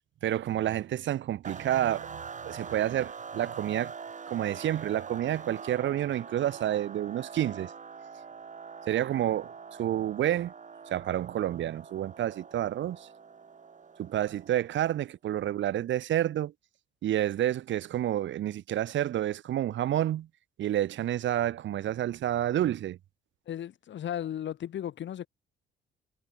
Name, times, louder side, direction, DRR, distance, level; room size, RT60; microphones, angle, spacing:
voice 1, 0.2-3.9 4.3-7.7 8.9-9.5 9.8-10.5 10.9-13.1 14.0-16.5 17.0-20.3 20.6-23.0, right 12 dB, 70° right, 1.3 m, -29 dB
sound 1, 1.4-14.8, right 5 dB, 40° right, 4.0 m, -44 dB
voice 2, 23.5-25.3, left 10 dB, 65° left, 4.1 m, -35 dB
cardioid pair, 90°, 20 cm